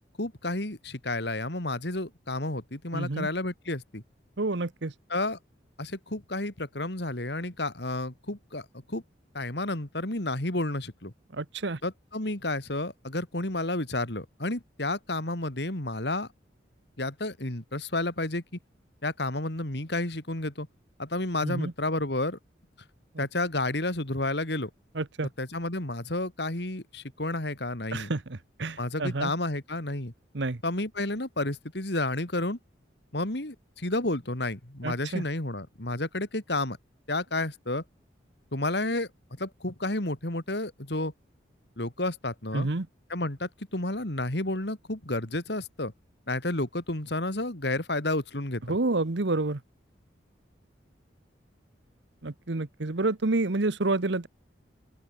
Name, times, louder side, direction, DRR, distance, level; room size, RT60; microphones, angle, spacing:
voice 1, 0.2-4.0 5.1-5.4 5.8-9.0 9.3-11.1 11.8-16.3 17.0-18.4 19.0-20.7 21.0-22.4 23.2-24.7 25.4-28.1 28.8-30.1 30.6-32.6 33.1-36.8 37.1-37.8 38.5-39.1 39.4-41.1 41.8-42.7 43.1-45.9 46.3-48.6, left 2 dB, 60° left, 2.9 m, -31 dB
voice 2, 2.9-3.3 4.4-4.9 11.3-11.8 21.4-21.7 23.1-23.3 24.9-25.3 27.9-29.3 30.3-30.6 34.8-35.2 42.5-42.9 48.7-49.6 52.2-54.3, right 2 dB, 70° right, 1.1 m, -29 dB
open air
head